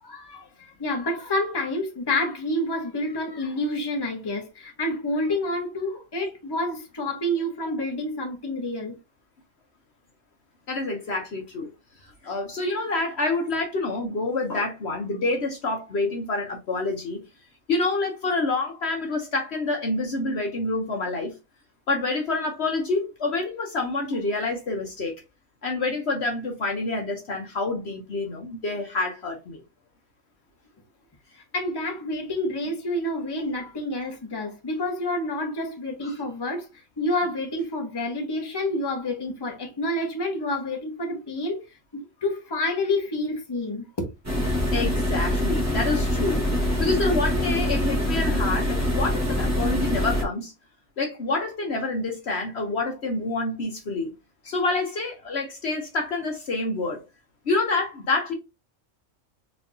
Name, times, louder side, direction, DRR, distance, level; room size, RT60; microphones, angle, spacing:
voice 1, 0.0-9.0 31.5-36.7 37.0-41.6 41.9-44.1, left 1 dB, 20° left, 1.0 m, -28 dB
voice 2, 10.7-11.7 12.0-17.2 17.7-21.4 21.9-25.1 25.6-29.6 36.0-36.1 44.7-46.4 46.8-50.5 51.0-54.1 54.4-57.0 57.5-58.3, left 3 dB, 55° left, 1.1 m, -27 dB
sound 1, 44.2-50.2, left 1 dB, 15° right, 1.1 m, -24 dB
4.4 x 3.4 x 2.7 m
omnidirectional pair, 1.4 m